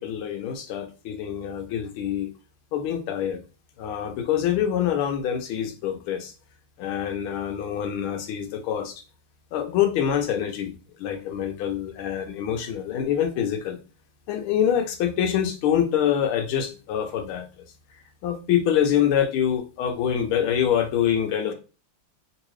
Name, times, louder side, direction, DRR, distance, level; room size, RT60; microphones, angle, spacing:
voice 1, 0.0-2.3 2.7-3.4 3.8-6.3 6.8-9.0 9.5-10.7 11.0-13.8 14.3-17.5 18.2-21.5, left 9 dB, 90° left, 5 dB, 1.6 m, -25 dB
3.7 x 2.7 x 3.1 m, 0.32 s
omnidirectional pair, 2.3 m